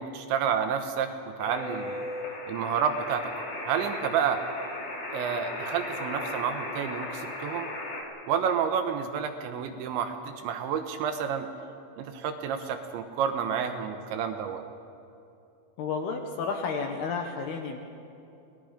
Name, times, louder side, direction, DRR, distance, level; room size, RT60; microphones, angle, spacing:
voice 1, 0.0-2.0 2.5-4.4 5.1-7.7 8.3-10.2 10.4-11.5 12.0-14.6, right 7 dB, 75° right, 6 dB, 3.0 m, -30 dB
sound 1, 1.4-8.0, left 2 dB, 30° left, 2.3 m, -36 dB
voice 2, 15.8-17.8, left 5 dB, 70° left, 3 dB, 2.7 m, -31 dB
28.0 x 20.0 x 5.1 m, 2.7 s
omnidirectional pair, 5.8 m